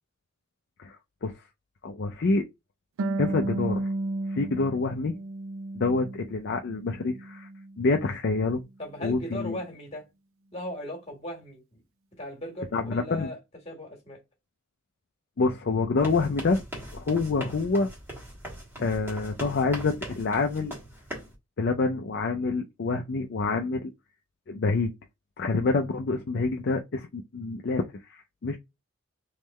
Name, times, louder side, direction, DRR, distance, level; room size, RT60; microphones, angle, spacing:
voice 1, 0.8-1.3 1.8-2.4 3.2-3.9 4.3-5.1 5.7-7.5 7.8-8.6 9.0-9.6 12.7-13.3 15.4-16.6 16.9-17.9 18.8-20.8 21.6-23.9 24.5-24.9 25.4-28.6, left 3 dB, 50° left, 0.4 m, -27 dB
Harp, 3.0-6.4 6.7-7.8, right 2 dB, 75° right, 0.4 m, -33 dB
voice 2, 8.8-10.1 10.5-11.8 12.2-13.4 13.7-14.2, left 1 dB, 30° left, 1.6 m, -38 dB
sound 1, 16.0-21.3, right 1 dB, 10° right, 1.3 m, -40 dB
3.6 x 3.1 x 3.1 m
head